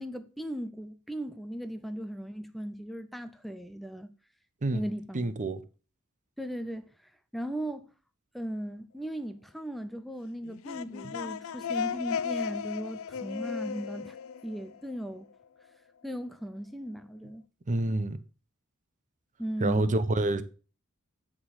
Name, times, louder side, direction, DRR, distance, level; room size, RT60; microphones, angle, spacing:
voice 1, 0.0-4.1 4.7-5.3 6.4-7.9 8.3-14.2 14.4-15.3 16.0-17.4 19.4-19.9, equal, ahead, 0.4 m, -37 dB
voice 2, 5.1-5.6 17.7-18.2 19.6-20.4, right 2 dB, 35° right, 0.7 m, -27 dB
sound 1, 10.4-15.2, left 7 dB, 65° left, 0.4 m, -35 dB
8.7 x 3.8 x 6.2 m
head